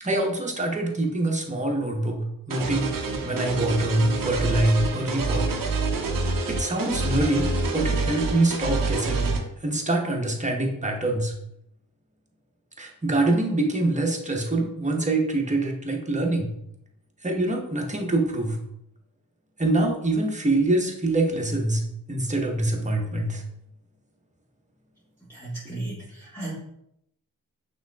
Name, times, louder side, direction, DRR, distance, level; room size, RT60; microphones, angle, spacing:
voice 1, 0.0-5.5 6.5-9.3 9.6-11.3 12.8-16.5 17.2-18.6 19.6-21.8 22.1-23.4, right 2 dB, 20° right, 1 dB, 1.0 m, -25 dB
sound 1, 2.5-9.4, right 3 dB, 70° right, 0.7 m, -27 dB
voice 2, 25.3-26.5, right 2 dB, 5° left, -8 dB, 1.2 m, -35 dB
5.8 x 3.2 x 2.3 m, 0.77 s
cardioid pair, 45°, 34 cm